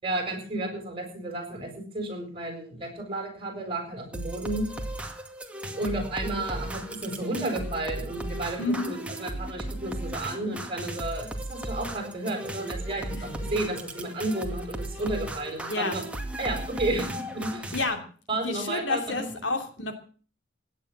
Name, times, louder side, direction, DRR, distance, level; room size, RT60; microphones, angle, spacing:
voice 1, 0.0-4.7 5.7-16.0 16.4-17.7 18.3-19.3, right 2 dB, 30° right, 3 dB, 7.4 m, -32 dB
sound 1, 4.1-17.8, right 1 dB, 5° right, 2.2 m, -36 dB
voice 2, 8.6-8.9 12.9-13.5 15.7-16.0 17.7-18.0 18.3-20.0, left 3 dB, 80° left, 7 dB, 3.0 m, -30 dB
17.0 x 10.5 x 7.4 m, 0.42 s
head